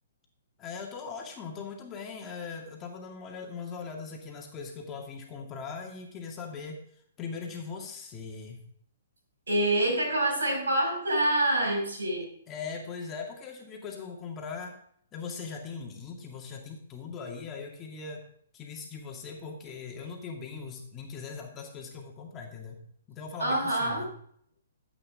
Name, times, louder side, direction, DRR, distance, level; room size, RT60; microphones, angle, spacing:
voice 1, 0.6-6.8 7.2-8.6 12.5-14.8 15.1-18.2 18.5-22.8 23.1-24.1, left 5 dB, 20° left, 0 dB, 2.3 m, -40 dB
voice 2, 9.5-12.3 23.4-24.0, right 1 dB, 80° right, 0 dB, 5.7 m, -26 dB
13.0 x 8.5 x 3.7 m, 0.63 s
figure-of-eight pair, 130°, 0 cm